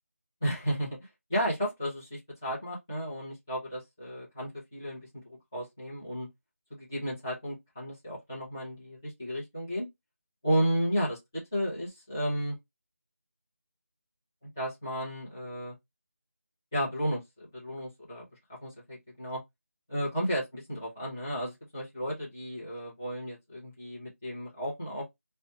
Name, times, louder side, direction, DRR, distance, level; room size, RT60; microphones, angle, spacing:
voice 1, 0.4-1.0 1.3-6.3 6.7-9.9 10.4-12.6 14.6-15.7 16.7-19.4 19.9-25.1, equal, 10° left, 0.7 m, -33 dB
2.8 x 2.1 x 2.7 m
figure-of-eight pair, 180°, 8 cm